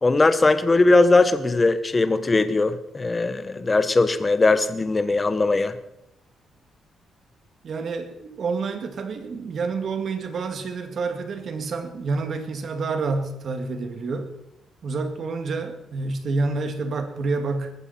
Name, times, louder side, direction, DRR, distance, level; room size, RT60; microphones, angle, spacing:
voice 1, 0.0-5.7, left 3 dB, 20° left, 12 dB, 1.0 m, -19 dB
voice 2, 7.6-14.3 14.8-17.7, right 3 dB, 50° right, 7 dB, 2.1 m, -28 dB
19.5 x 14.5 x 4.3 m, 0.86 s
cardioid pair, 145°, 0 cm